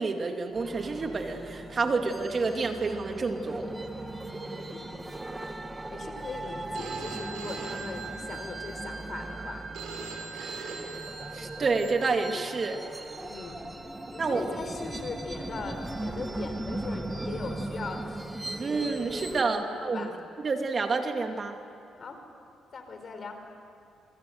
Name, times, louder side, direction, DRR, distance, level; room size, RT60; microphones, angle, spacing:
voice 1, 0.0-3.7 10.3-11.0 11.3-12.8 14.2-14.5 18.6-20.1 20.4-21.6, right 4 dB, 40° right, 4 dB, 2.4 m, -29 dB
sound 1, 0.5-19.4, right 2 dB, 15° right, 1.7 m, -38 dB
voice 2, 4.4-4.9 5.9-9.7 13.2-13.6 14.1-18.2 19.4-20.2 22.0-22.2 22.7-23.4, left 4 dB, 45° left, 6 dB, 4.4 m, -40 dB
Telephone, 6.7-12.7, right 5 dB, 80° right, 5.6 m, -41 dB
27.5 x 24.5 x 8.0 m, 2.6 s
cardioid pair, 90°, 0 cm